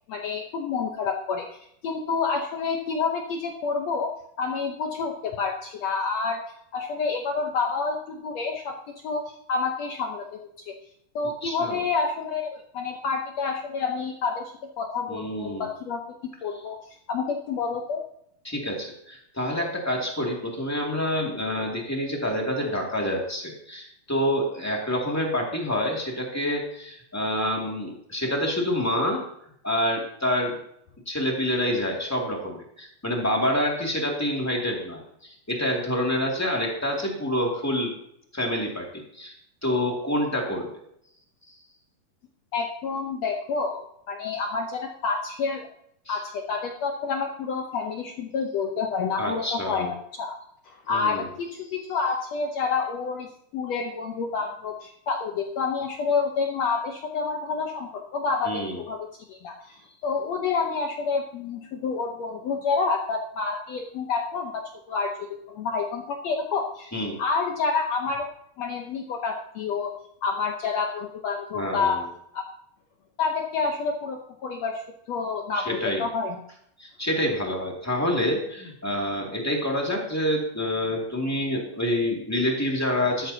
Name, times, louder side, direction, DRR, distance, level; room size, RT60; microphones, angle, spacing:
voice 1, 0.1-6.4 6.7-8.8 9.0-10.7 11.1-16.0 16.4-16.8 17.1-18.0 42.5-45.7 46.1-50.4 50.6-53.3 53.5-68.3 68.6-72.0 72.3-72.4 73.2-74.8 75.1-76.4, left 4 dB, 70° left, 2 dB, 1.6 m, -29 dB
voice 2, 11.4-11.8 15.1-15.7 18.4-29.2 29.6-30.6 31.0-37.9 38.3-38.9 39.1-39.3 39.6-40.7 46.0-46.2 49.2-49.9 50.9-51.3 58.4-58.8 66.9-67.2 71.5-72.0 75.5-76.0 76.8-83.3, left 1 dB, 5° left, -1 dB, 1.5 m, -27 dB
13.5 x 12.5 x 2.8 m, 0.72 s
omnidirectional pair, 4.1 m